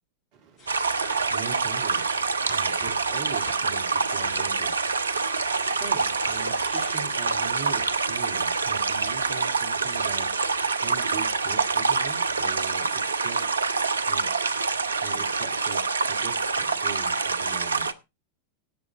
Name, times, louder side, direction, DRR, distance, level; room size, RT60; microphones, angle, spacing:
voice 1, 0.3-0.7 1.3-2.0 2.5-4.7 5.7-10.3 10.8-13.4 14.0-14.3 15.0-15.8 16.1-17.9, right 6 dB, 45° right, 4 dB, 2.9 m, -41 dB
sound 1, 0.6-7.0, left 3 dB, 35° left, 6.0 m, -47 dB
sound 2, 0.7-17.9, right 4 dB, 75° right, 0.7 m, -26 dB
18.0 x 7.0 x 3.8 m, 0.26 s
figure-of-eight pair, 90°, 0 cm